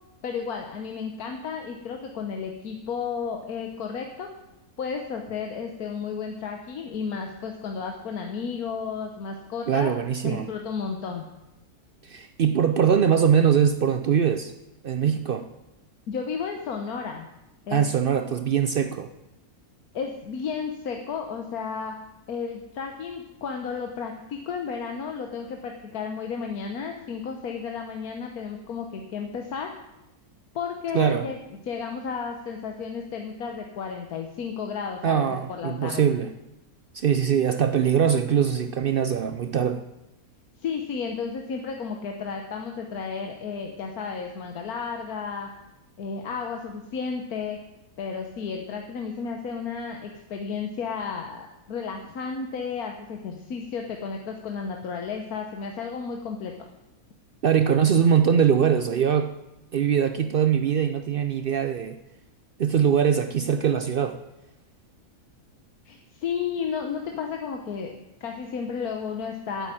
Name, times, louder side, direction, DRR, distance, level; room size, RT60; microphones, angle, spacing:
voice 1, 0.2-4.3 4.8-9.9 10.2-11.3 16.1-17.3 17.6-17.8 19.9-21.9 22.3-29.7 30.5-31.4 31.6-36.1 40.6-45.5 46.0-47.6 48.0-56.7 65.8-67.9 68.2-69.7, left 6 dB, 80° left, 3 dB, 1.5 m, -33 dB
voice 2, 9.7-10.5 12.0-14.5 14.8-15.5 17.7-19.1 30.9-31.3 35.0-36.3 36.9-39.8 57.4-59.3 59.7-62.0 62.6-64.2, right 8 dB, 70° right, 9 dB, 0.5 m, -22 dB
8.4 x 8.0 x 9.0 m, 0.93 s
omnidirectional pair, 1.6 m